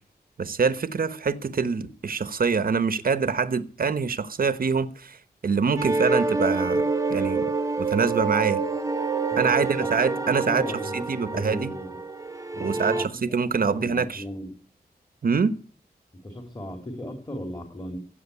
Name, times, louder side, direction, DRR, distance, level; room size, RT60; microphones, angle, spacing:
voice 1, 0.4-5.2 5.4-6.8 7.1-7.4 7.8-8.6 9.4-10.6 10.9-11.7 12.6-14.2 15.2-15.6, right 5 dB, 65° right, 1.1 m, -25 dB
sound 1, 5.8-13.1, right 3 dB, 20° right, 1.1 m, -27 dB
voice 2, 9.3-11.1 11.3-11.9 12.5-13.1 13.4-14.5 16.2-18.0, left 1 dB, 25° left, 3.0 m, -37 dB
15.5 x 8.0 x 9.5 m
wide cardioid pair, 95°, 16 cm